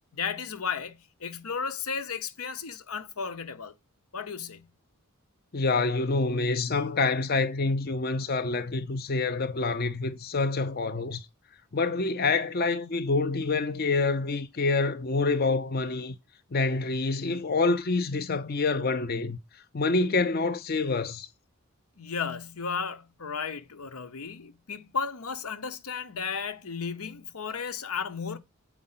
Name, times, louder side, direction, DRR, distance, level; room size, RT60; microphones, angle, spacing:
voice 1, 0.1-3.7 4.1-4.7 22.0-28.4, left 6 dB, 85° left, 1.0 m, -34 dB
voice 2, 5.5-11.3 11.7-16.2 16.5-19.4 19.7-21.3, left 3 dB, 45° left, 0.6 m, -27 dB
7.7 x 4.9 x 5.7 m
head